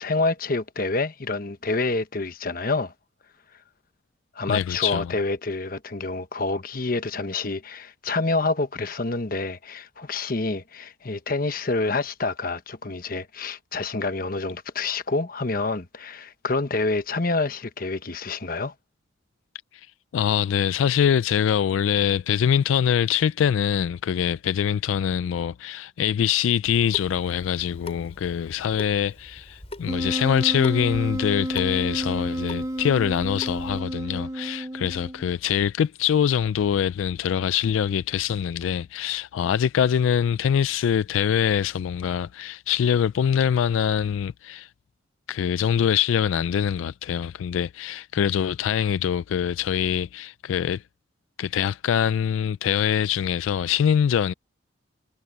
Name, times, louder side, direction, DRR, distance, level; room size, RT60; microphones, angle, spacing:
voice 1, 0.0-2.9 4.3-18.7, left 3 dB, 45° left, 1.1 m, -27 dB
voice 2, 4.5-5.1 19.7-19.9 20.1-44.7 45.3-50.8 51.4-54.3, left 8 dB, 85° left, 0.3 m, -24 dB
Water tap faucet / Sink (filling or washing) / Drip, 26.6-33.8, left 2 dB, 30° left, 4.4 m, -44 dB
Wind instrument woodwind instrument, 29.9-35.3, right 1 dB, 15° right, 0.6 m, -30 dB
head